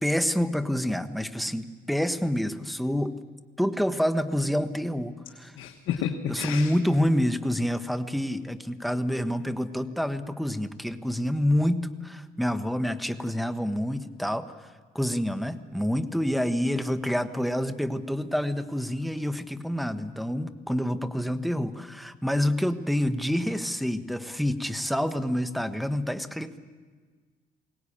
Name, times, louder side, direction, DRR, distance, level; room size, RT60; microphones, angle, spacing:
voice 1, 0.0-3.2 3.6-5.6 6.3-26.6, equal, ahead, 9 dB, 1.2 m, -27 dB
voice 2, 5.6-6.7, left 9 dB, 90° left, 4 dB, 1.4 m, -31 dB
22.5 x 18.0 x 8.7 m, 1.5 s
cardioid pair, 90°, 20 cm